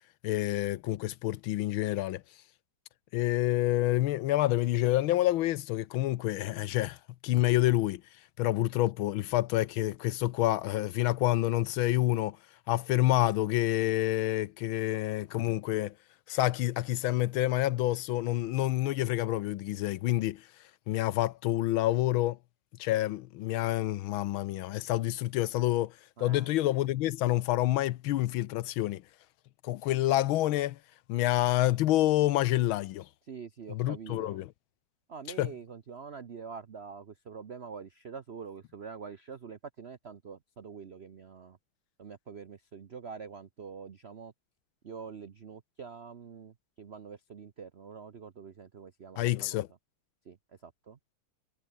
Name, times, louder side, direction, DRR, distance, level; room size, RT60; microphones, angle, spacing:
voice 1, 0.2-2.2 3.1-7.0 7.2-8.0 8.4-12.4 12.7-15.9 16.3-20.5 20.9-22.4 22.8-29.0 29.6-30.8 31.1-33.1 33.7-34.5 35.4-35.5 49.2-49.7, left 15 dB, 75° left, 1.4 m, -28 dB
voice 2, 26.2-26.5 33.3-34.4 35.1-41.6 42.0-44.3 44.8-49.6 50.3-50.4 50.6-51.0, right 6 dB, 65° right, 0.6 m, -45 dB
omnidirectional pair, 2.4 m